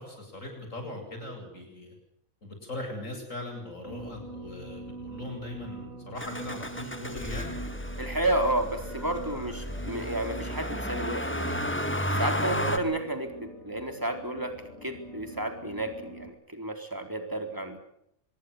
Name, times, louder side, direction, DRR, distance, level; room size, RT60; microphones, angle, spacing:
voice 1, 0.0-2.0 2.4-7.5 12.5-12.7, left 1 dB, 70° left, 3 dB, 8.6 m, -40 dB
sound 1, 3.8-16.3, right 1 dB, 50° right, 6.8 m, -43 dB
Motor vehicle (road), 6.2-12.8, equal, 10° left, 1.7 m, -33 dB
voice 2, 8.0-11.6 12.2-17.8, right 1 dB, 15° right, 5 dB, 4.1 m, -31 dB
25.5 x 21.5 x 8.2 m, 0.75 s
omnidirectional pair, 1.4 m